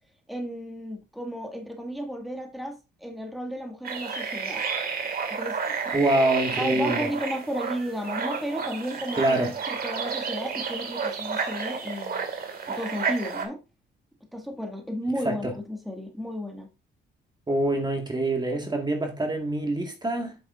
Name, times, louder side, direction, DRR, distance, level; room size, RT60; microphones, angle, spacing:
voice 1, 0.3-4.7 5.3-6.0 6.5-9.4 9.7-12.3 12.7-13.6 14.3-16.7, equal, ahead, 1.8 m, -33 dB
sound 1, 3.8-13.5, right 5 dB, 50° right, 2.1 m, -31 dB
voice 2, 5.9-7.1 9.2-9.5 15.2-15.5 17.5-20.4, right 1 dB, 20° right, 1.8 m, -25 dB
8.8 x 6.9 x 2.5 m
cardioid pair, 90°, 20 cm